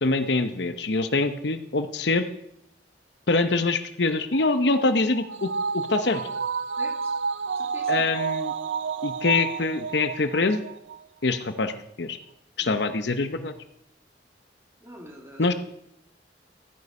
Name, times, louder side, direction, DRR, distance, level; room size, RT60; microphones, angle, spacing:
voice 1, 0.0-2.3 3.3-6.2 7.9-8.5 9.0-10.6 11.2-11.7 12.0-12.2 12.6-13.5 15.4-15.5, left 3 dB, 65° left, 9 dB, 0.8 m, -24 dB
sound 1, 4.3-11.0 11.3-11.4, right 6 dB, 75° right, 0.5 m, -30 dB
voice 2, 6.8-7.2 7.6-8.1 12.6-12.8 14.8-15.5, equal, 15° right, -1 dB, 2.8 m, -45 dB
14.0 x 9.5 x 5.4 m, 0.76 s
head